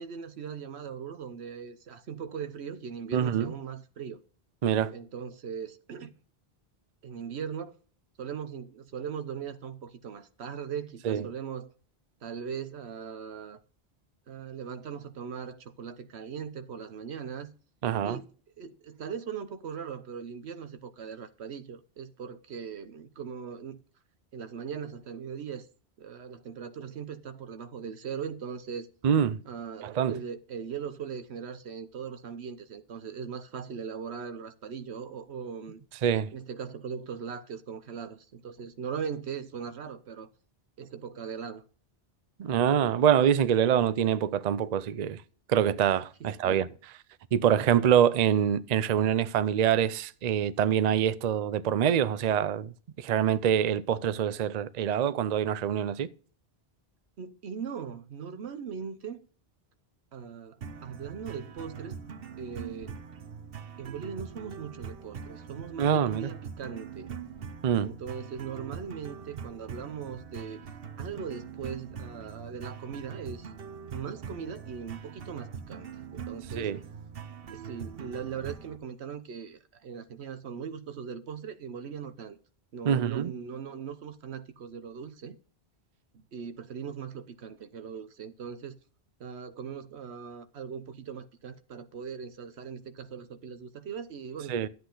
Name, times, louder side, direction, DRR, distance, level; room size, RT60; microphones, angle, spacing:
voice 1, 0.0-4.2 4.9-6.1 7.0-7.7 8.2-11.7 12.2-13.6 14.3-17.5 18.0-18.3 18.6-23.8 24.3-25.7 26.0-28.9 29.5-35.8 36.3-40.3 40.8-41.6 46.2-46.7 57.2-59.2 60.1-60.6 60.8-62.0 62.4-63.0 63.8-67.1 67.7-70.6 71.0-73.5 73.9-76.7 77.5-82.4 82.7-85.4 86.1-88.8 89.2-94.6, right 7 dB, 90° right, 1.1 m, -39 dB
voice 2, 3.1-3.5 4.6-4.9 11.0-11.2 17.8-18.2 29.0-29.4 29.8-30.1 36.0-36.3 42.4-45.2 45.5-46.7 47.3-52.7 53.0-56.1 65.8-66.3 67.6-67.9 76.6-76.8 82.9-83.3 94.5-94.7, right 9 dB, 50° right, 0.6 m, -25 dB
sound 1, 60.6-78.8, right 6 dB, 65° right, 1.0 m, -42 dB
12.0 x 8.1 x 3.9 m
omnidirectional pair, 1.1 m